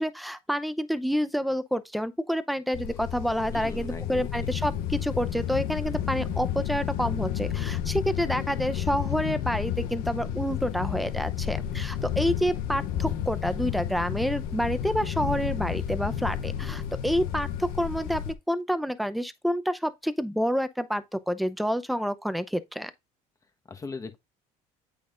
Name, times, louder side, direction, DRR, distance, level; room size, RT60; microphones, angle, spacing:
voice 1, 0.0-22.9, equal, ahead, 0.6 m, -28 dB
sound 1, 2.7-18.3, left 10 dB, 80° left, 0.8 m, -31 dB
voice 2, 3.5-4.3 23.7-24.2, left 4 dB, 20° left, 1.2 m, -39 dB
8.5 x 5.4 x 2.5 m
cardioid pair, 110°, 15 cm